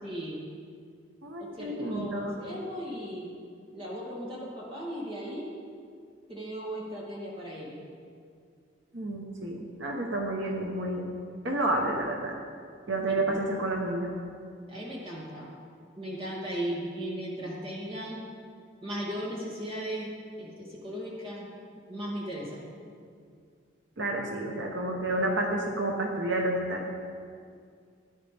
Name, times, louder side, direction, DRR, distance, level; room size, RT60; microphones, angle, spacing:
voice 1, 0.0-0.5 1.4-3.3 3.7-5.5 6.3-7.8 13.2-13.4 14.7-15.5 16.0-18.2 18.8-21.5 21.9-22.7, equal, 30° right, -5 dB, 2.5 m, -37 dB
voice 2, 1.2-2.3 8.9-11.1 11.4-12.3 12.9-14.1 24.0-26.9, right 1 dB, 80° right, 1 dB, 1.1 m, -30 dB
14.5 x 9.8 x 3.5 m, 2.2 s
head